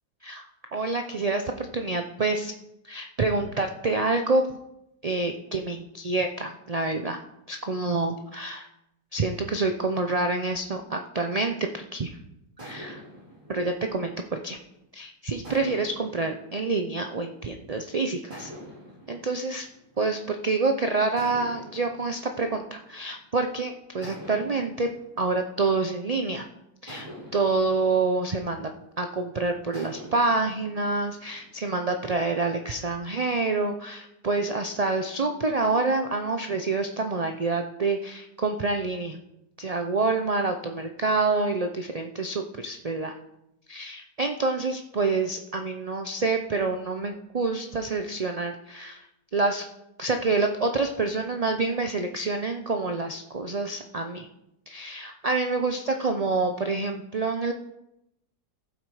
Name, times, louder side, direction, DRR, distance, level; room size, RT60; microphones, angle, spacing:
voice 1, 0.7-2.5 2.8-4.4 5.0-7.2 7.5-8.7 9.1-12.1 12.6-13.0 13.5-14.6 14.9-18.5 19.1-19.7 20.0-24.9 25.2-26.5 26.8-28.7 29.0-39.2 39.6-43.1 43.7-49.0 49.3-49.6 50.0-54.3 54.7-57.5, right 3 dB, 40° right, 5 dB, 0.5 m, -27 dB
sound 1, 12.6-14.8 15.4-17.7 18.3-20.6 21.2-23.4 24.0-26.3 26.9-29.1 29.7-31.6, equal, 20° right, 4.4 m, -47 dB
15.0 x 7.8 x 4.9 m, 0.85 s
omnidirectional pair, 1.7 m